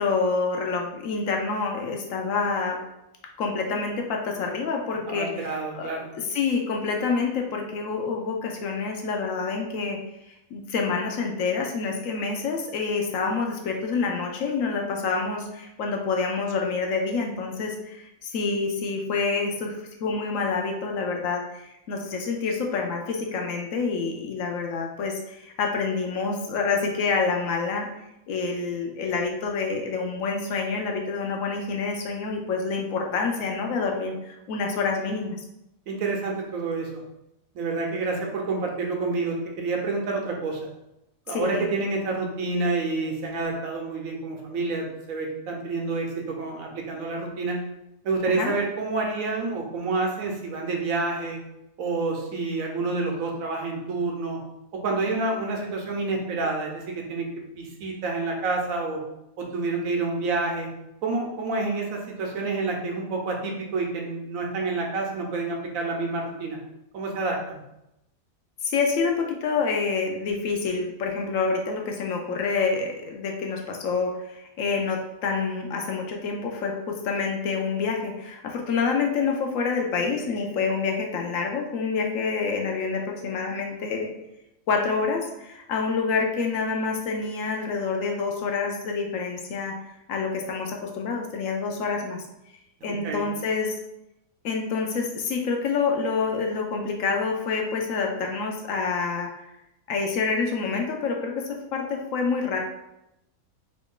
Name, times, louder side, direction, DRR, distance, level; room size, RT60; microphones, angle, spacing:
voice 1, 0.0-2.8 3.4-10.0 10.5-27.9 28.3-35.4 41.3-41.7 48.3-48.5 68.6-84.1 84.7-89.7 90.1-92.2 92.8-93.7 94.4-99.3 99.9-102.7, left 4 dB, 70° left, 2 dB, 0.9 m, -27 dB
voice 2, 5.1-6.1 35.9-37.0 37.5-40.6 41.3-47.6 48.0-51.4 51.8-54.4 54.7-57.3 57.6-59.0 59.4-60.7 61.0-66.6 66.9-67.6 92.8-93.2, right 3 dB, 75° right, 1 dB, 1.1 m, -28 dB
3.1 x 2.5 x 3.6 m, 0.87 s
omnidirectional pair, 1.5 m